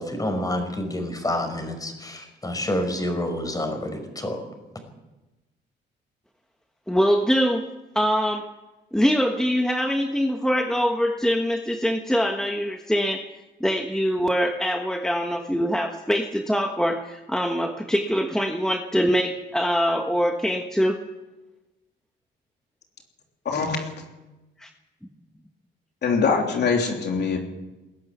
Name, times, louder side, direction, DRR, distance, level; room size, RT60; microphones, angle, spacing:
voice 1, 0.0-4.4, left 1 dB, 20° left, 6 dB, 5.5 m, -28 dB
voice 2, 6.9-7.7 7.9-8.5 8.9-13.3 13.6-21.0 24.6-24.7, equal, 5° left, 4 dB, 1.3 m, -23 dB
voice 3, 23.4-24.0 26.0-27.4, left 5 dB, 60° left, 2 dB, 3.3 m, -23 dB
21.0 x 13.0 x 9.5 m, 1.1 s
cardioid pair, 90°, 20 cm